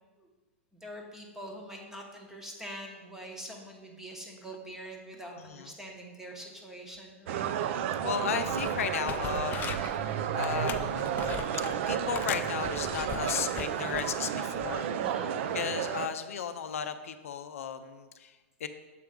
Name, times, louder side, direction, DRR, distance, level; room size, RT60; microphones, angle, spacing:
voice 1, 0.7-7.5 15.0-15.4, right 1 dB, 5° right, 1 dB, 1.0 m, -44 dB
voice 2, 5.3-5.7 8.0-11.1 11.9-15.0 15.5-18.3 18.6-18.7, left 8 dB, 85° left, 9 dB, 0.4 m, -35 dB
sound 1, 7.3-16.1, right 9 dB, 60° right, 0.4 m, -32 dB
sound 2, 8.0-8.2 8.4-10.0 10.4-11.8 12.1-14.1 14.6-14.8, left 8 dB, 25° left, 0.3 m, -40 dB
6.7 x 3.3 x 4.9 m, 1.2 s
hypercardioid pair, 125°, 7 cm